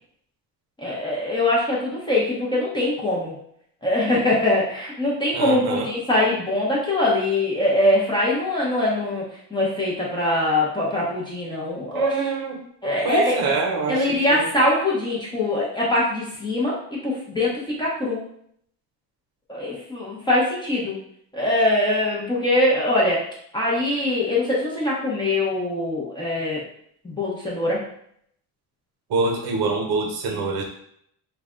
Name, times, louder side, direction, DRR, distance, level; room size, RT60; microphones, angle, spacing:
voice 1, 0.8-3.3 3.8-9.2 9.5-12.1 12.8-13.6 13.9-18.2 19.5-21.0 21.3-23.2 23.5-26.6 27.0-27.8, left 1 dB, 10° left, -6 dB, 0.8 m, -22 dB
voice 2, 5.3-5.9 11.9-12.6 13.0-14.5 29.1-30.6, right 3 dB, 60° right, 2 dB, 0.7 m, -25 dB
3.3 x 2.3 x 3.7 m, 0.68 s
cardioid pair, 155°, 40 cm